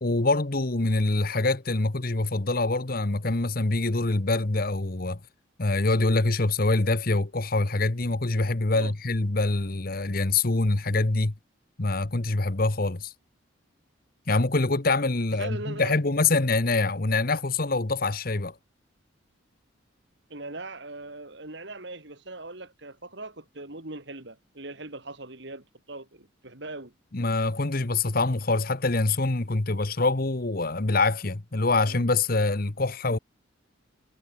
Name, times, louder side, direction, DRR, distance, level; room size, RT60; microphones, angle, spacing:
voice 1, 0.0-5.2 5.6-11.3 11.8-13.1 14.3-18.5 27.1-33.2, left 2 dB, 45° left, 1.1 m, -25 dB
voice 2, 15.3-16.0 20.3-26.9 31.8-32.1, right 2 dB, 55° right, 2.5 m, -40 dB
head